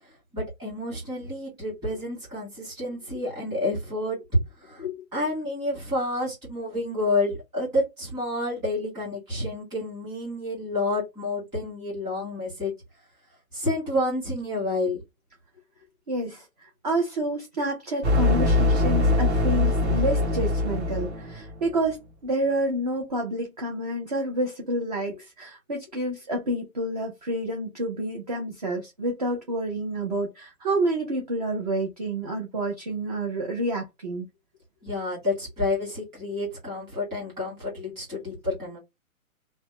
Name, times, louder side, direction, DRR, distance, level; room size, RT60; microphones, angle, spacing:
voice 1, 0.3-4.2 4.6-12.7 13.5-15.0 34.8-38.8, left 2 dB, 10° right, 1.5 m, -29 dB
voice 2, 16.1-34.3, right 1 dB, 30° right, 0.4 m, -29 dB
sound 1, 18.0-21.6, left 2 dB, 50° right, 1.4 m, -22 dB
2.7 x 2.1 x 3.0 m
hypercardioid pair, 160°, 42 cm